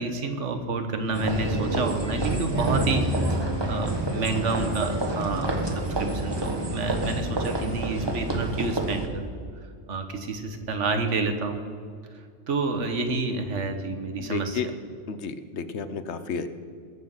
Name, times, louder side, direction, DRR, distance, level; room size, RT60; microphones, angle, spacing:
voice 1, 0.0-9.3 9.9-11.6 12.5-14.7, right 3 dB, 80° right, 6 dB, 1.5 m, -29 dB
sound 1, 1.1-9.1, right 1 dB, 20° right, 1.4 m, -28 dB
voice 2, 14.2-14.7 15.1-16.5, left 5 dB, 70° left, 11 dB, 1.1 m, -32 dB
21.0 x 7.5 x 5.7 m, 2.1 s
omnidirectional pair, 1.2 m